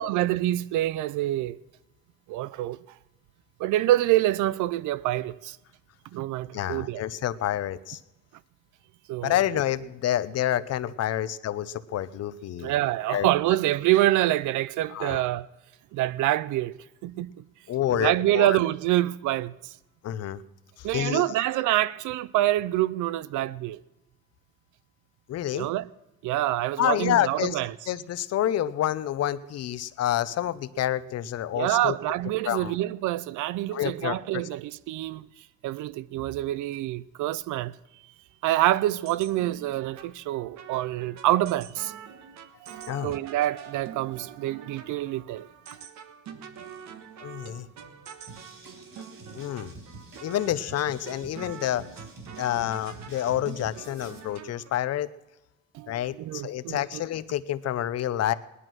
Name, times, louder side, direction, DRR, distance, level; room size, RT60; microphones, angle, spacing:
voice 1, 0.0-1.6 2.3-2.8 3.6-5.6 6.1-7.0 9.1-9.4 12.6-15.5 15.9-16.7 17.0-17.4 17.9-19.7 20.8-23.8 25.5-25.9 26.2-27.7 31.5-35.3 35.6-37.7 38.4-41.9 42.6-45.8 55.7-57.0, right 15 dB, 85° right, 0.6 m, -26 dB
voice 2, 6.5-8.0 9.2-12.7 13.1-13.3 14.9-15.2 17.7-18.6 20.0-20.4 20.8-21.3 25.3-25.7 26.8-27.6 27.9-31.9 32.4-32.8 33.7-34.4 42.9-43.1 47.2-47.7 49.3-49.7 50.2-51.8 52.4-55.1 55.9-58.3, left 12 dB, 55° left, 0.7 m, -28 dB
sound 1, 39.0-54.7, right 7 dB, 70° right, 1.4 m, -46 dB
sound 2, 48.3-54.2, right 3 dB, 45° right, 4.3 m, -47 dB
18.5 x 11.0 x 6.2 m
cardioid pair, 140°, 29 cm